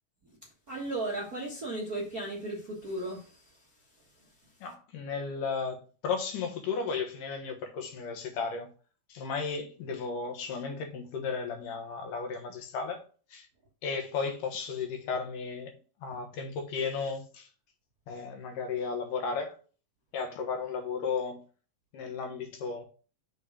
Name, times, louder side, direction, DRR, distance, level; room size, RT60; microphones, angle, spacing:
voice 1, 0.2-4.7, right 2 dB, 50° right, 1.1 m, -37 dB
voice 2, 4.6-8.7 9.1-13.0 13.3-13.5 13.8-15.7 16.0-17.5 18.1-19.6 20.1-21.4 21.9-22.9, left 5 dB, 75° left, 2.8 m, -34 dB
6.9 x 4.4 x 4.9 m
omnidirectional pair, 3.8 m